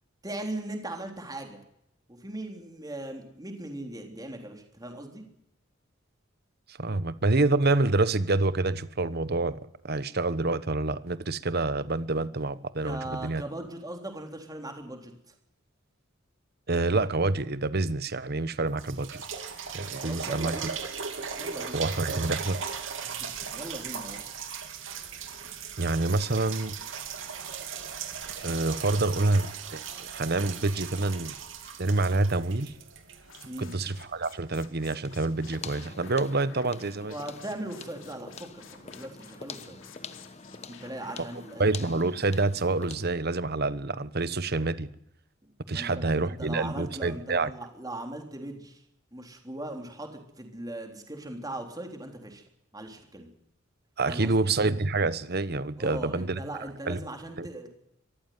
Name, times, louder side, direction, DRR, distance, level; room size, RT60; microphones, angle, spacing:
voice 1, 0.2-1.6 2.1-5.2 12.8-15.1 20.0-20.7 21.4-21.8 23.0-24.3 33.4-33.7 37.1-39.8 40.7-41.7 45.4-48.8 49.1-52.4 52.7-53.3 54.0-54.5 55.8-57.7, right 1 dB, 20° right, 4 dB, 3.6 m, -39 dB
voice 2, 6.7-9.6 9.8-13.4 16.7-19.3 19.7-20.6 21.7-22.6 25.8-26.7 28.4-31.4 31.8-32.7 33.6-37.1 41.6-44.9 45.7-47.5 54.0-56.4 56.9-57.0 57.4-57.5, right 2 dB, 50° right, 15 dB, 1.1 m, -27 dB
sound 1, 18.2-18.3 18.7-34.4 35.1-35.2, right 6 dB, 70° right, 2.9 m, -38 dB
sound 2, 33.2-41.6, left 7 dB, 75° left, 2.7 m, -53 dB
sound 3, 35.0-43.2, left 4 dB, 35° left, 1.1 m, -45 dB
23.0 x 14.5 x 9.4 m, 0.77 s
head